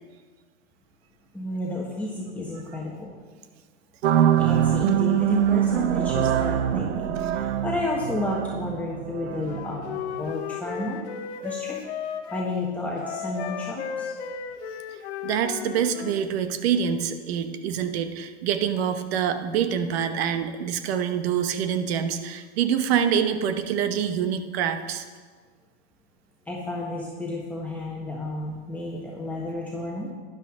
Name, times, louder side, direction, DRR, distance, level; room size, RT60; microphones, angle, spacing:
voice 1, 1.3-3.2 4.4-11.0 11.4-11.8 12.3-14.1 26.4-30.1, left 2 dB, 5° left, -4 dB, 1.4 m, -31 dB
sound 1, 4.0-10.3, right 10 dB, 80° right, 0.8 m, -24 dB
Wind instrument woodwind instrument, 9.4-12.5 13.0-16.2, left 8 dB, 70° left, 1.1 m, -35 dB
voice 2, 15.2-25.0, right 8 dB, 60° right, 9 dB, 1.1 m, -26 dB
12.0 x 10.5 x 3.8 m, 1.5 s
hypercardioid pair, 120°, 34 cm